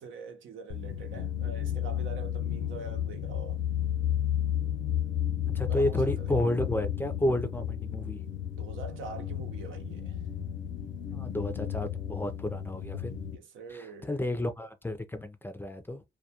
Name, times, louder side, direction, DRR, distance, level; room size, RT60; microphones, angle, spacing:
voice 1, 0.0-3.6 5.7-6.3 8.6-10.2 13.3-14.2, right 4 dB, 80° right, 0.8 m, -44 dB
sound 1, 0.7-13.3, left 10 dB, 75° left, 0.5 m, -33 dB
voice 2, 5.5-8.2 11.1-13.2 13.7-16.0, left 1 dB, 10° left, 0.5 m, -31 dB
2.3 x 2.3 x 2.8 m
cardioid pair, 90°, 20 cm